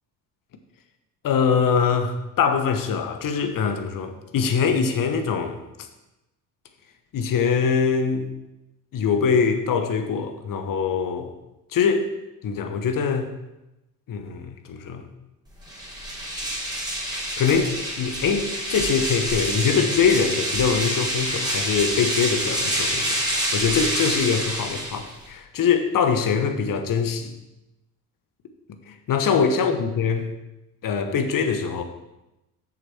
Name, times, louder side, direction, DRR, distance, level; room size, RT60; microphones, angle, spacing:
voice 1, 1.2-5.6 7.1-8.3 8.9-11.3 11.7-12.1 12.4-13.3 14.1-15.1 17.1-27.3 28.7-30.3 30.8-31.8, left 6 dB, 40° left, 7 dB, 1.2 m, -23 dB
sound 1, 15.6-25.3, right 1 dB, 10° right, 3.3 m, -27 dB
8.8 x 6.7 x 4.5 m, 0.95 s
hypercardioid pair, 60°, 50 cm